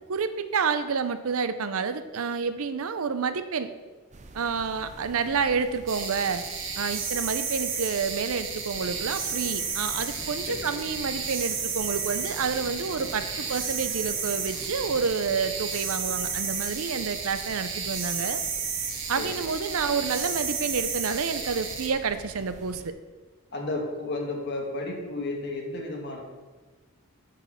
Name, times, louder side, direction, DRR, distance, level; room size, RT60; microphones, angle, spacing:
voice 1, 0.1-3.7 4.3-6.4 6.8-18.4 19.1-22.9, right 5 dB, 75° right, 11 dB, 0.6 m, -29 dB
sound 1, 4.1-22.9, right 2 dB, 35° right, 0.5 m, -47 dB
sound 2, 5.9-21.9, right 6 dB, 60° right, 1.3 m, -32 dB
sound 3, 8.7-16.6, left 1 dB, 85° left, 2.1 m, -48 dB
voice 2, 23.5-26.2, left 2 dB, 50° left, 0 dB, 1.6 m, -33 dB
8.6 x 5.0 x 5.7 m, 1.3 s
head